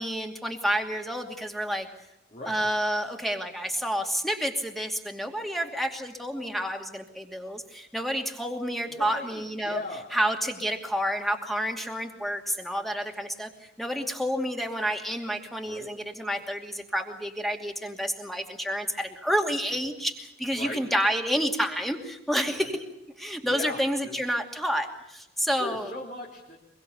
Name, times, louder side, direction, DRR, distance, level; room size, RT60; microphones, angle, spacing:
voice 1, 0.0-1.9 2.5-9.8 10.1-22.8 23.2-25.9, equal, ahead, 3 dB, 2.6 m, -29 dB
voice 2, 2.3-2.7 8.9-10.1 15.6-15.9 20.5-20.9 22.6-22.8 23.4-24.2 25.4-26.6, left 2 dB, 40° left, -3 dB, 3.6 m, -39 dB
24.5 x 23.5 x 7.0 m, 0.89 s
head